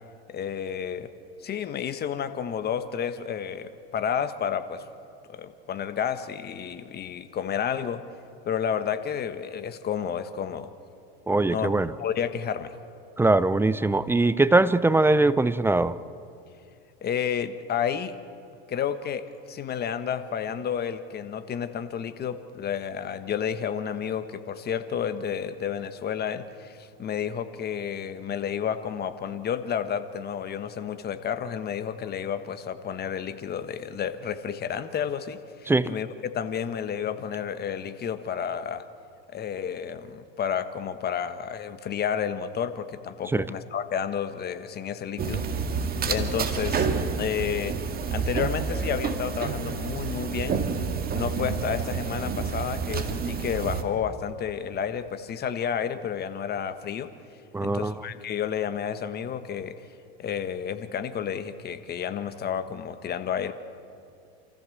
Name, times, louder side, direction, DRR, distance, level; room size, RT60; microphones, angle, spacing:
voice 1, 0.3-1.1 1.4-4.8 5.3-8.0 8.4-10.7 11.4-12.7 17.0-18.2 18.7-38.9 39.3-45.4 46.1-46.9 47.2-47.8 48.1-50.6 51.1-57.1 57.6-59.8 60.2-63.5, left 8 dB, 30° left, 11 dB, 1.3 m, -31 dB
voice 2, 11.3-11.9 13.2-16.0 35.7-35.9 43.3-43.4 57.5-58.0, right 2 dB, 5° right, 17 dB, 0.4 m, -21 dB
sound 1, 45.2-53.8, right 5 dB, 30° right, 1.9 m, -29 dB
28.0 x 14.5 x 7.8 m, 2.5 s
supercardioid pair, 115°, 32 cm